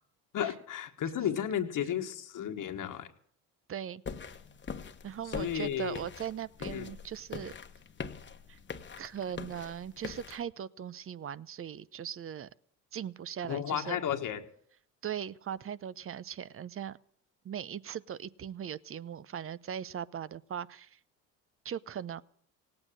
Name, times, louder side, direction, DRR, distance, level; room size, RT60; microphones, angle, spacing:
voice 1, 0.3-3.1 5.2-6.0 6.6-6.9 13.5-14.5, left 9 dB, 55° left, 5 dB, 1.5 m, -33 dB
voice 2, 3.7-4.0 5.0-7.6 8.5-8.6 9.0-12.5 12.9-14.0 15.0-17.0 17.4-21.0 21.6-22.2, right 9 dB, 35° right, 19 dB, 0.7 m, -39 dB
sound 1, 4.1-10.4, left 5 dB, 30° left, 1.2 m, -43 dB
17.5 x 8.8 x 9.0 m, 0.63 s
supercardioid pair, 70°, 38 cm